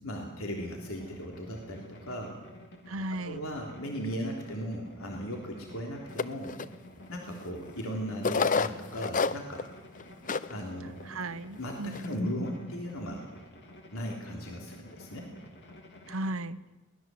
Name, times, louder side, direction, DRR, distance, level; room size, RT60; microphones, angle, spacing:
voice 1, 0.0-2.4 3.2-6.5 7.1-9.7 10.5-11.0 11.6-13.3 13.9-15.3, equal, 70° left, 1 dB, 3.4 m, -37 dB
sound 1, 0.5-16.4, left 1 dB, 55° left, 3.4 m, -51 dB
voice 2, 2.9-3.4 11.1-12.0 16.1-16.6, right 2 dB, 70° right, 14 dB, 1.0 m, -35 dB
sound 2, 6.2-6.7 7.4-7.5 8.2-9.7 10.0-10.1 10.3-10.5 11.0-11.1 11.7-12.1, left 4 dB, 40° left, 0.7 m, -28 dB
23.0 x 18.5 x 7.8 m, 1.1 s
head